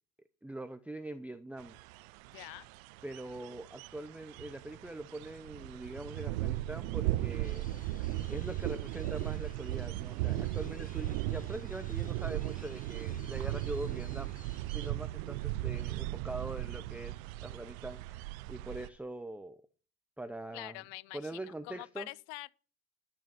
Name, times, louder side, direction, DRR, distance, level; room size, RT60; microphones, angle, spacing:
voice 1, 0.4-1.8 3.0-14.3 14.7-19.6 20.2-20.8 21.1-22.1, right 2 dB, 5° right, 0.7 m, -43 dB
sound 1, 1.6-18.9, right 16 dB, 85° right, 0.5 m, -37 dB
voice 2, 2.3-2.7 20.5-22.5, left 22 dB, 75° left, 0.6 m, -45 dB
sound 2, 7.4-14.9, left 4 dB, 20° left, 1.3 m, -59 dB
12.0 x 6.4 x 7.0 m
supercardioid pair, 75°, 40 cm